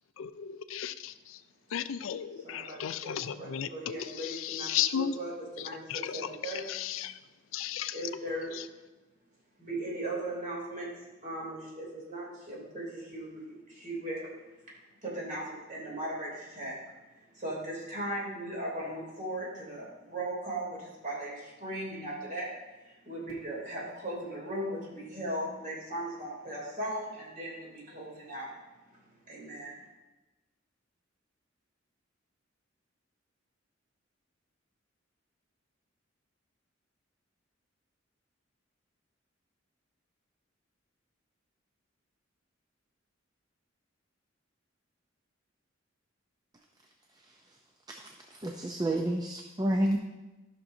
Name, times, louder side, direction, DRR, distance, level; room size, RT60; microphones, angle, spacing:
voice 1, 0.2-1.4 1.7-5.1 5.9-7.2 7.5-8.0, left 9 dB, 80° left, 12 dB, 0.4 m, -35 dB
voice 2, 2.4-6.8 7.9-8.5 9.6-10.9 11.2-14.3 15.0-16.8 17.3-22.5 22.8-28.5 29.3-29.7, right 1 dB, 45° right, -4 dB, 2.9 m, -38 dB
voice 3, 47.9-50.0, right 1 dB, 20° right, 2 dB, 0.5 m, -30 dB
13.0 x 6.0 x 2.7 m, 1.1 s
head